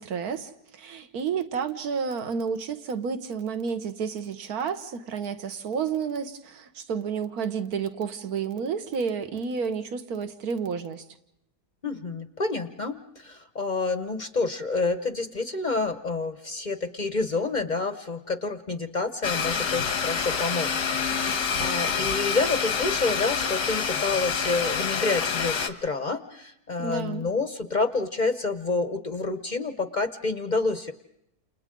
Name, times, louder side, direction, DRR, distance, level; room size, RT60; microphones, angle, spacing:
voice 1, 0.0-11.0 26.8-27.2, right 6 dB, 65° right, 9 dB, 1.7 m, -31 dB
voice 2, 11.8-20.7 21.0-30.9, left 3 dB, 35° left, 9 dB, 0.8 m, -28 dB
Domestic sounds home sounds, 19.2-25.7, left 6 dB, 85° left, 1.8 m, -27 dB
29.5 x 28.5 x 3.8 m, 0.78 s
omnidirectional pair, 1.8 m